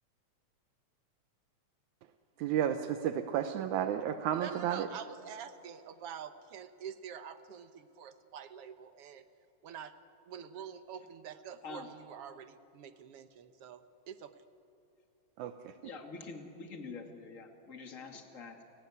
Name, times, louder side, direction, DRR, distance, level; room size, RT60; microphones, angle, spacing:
voice 1, 2.4-4.9 15.4-15.7, right 10 dB, 80° right, 8 dB, 2.2 m, -32 dB
voice 2, 4.3-9.2 9.6-9.9 10.3-14.3, right 8 dB, 60° right, 10 dB, 1.7 m, -46 dB
voice 3, 15.8-18.6, left 4 dB, 30° left, 4 dB, 2.2 m, -46 dB
30.0 x 18.0 x 9.6 m, 2.7 s
omnidirectional pair, 3.4 m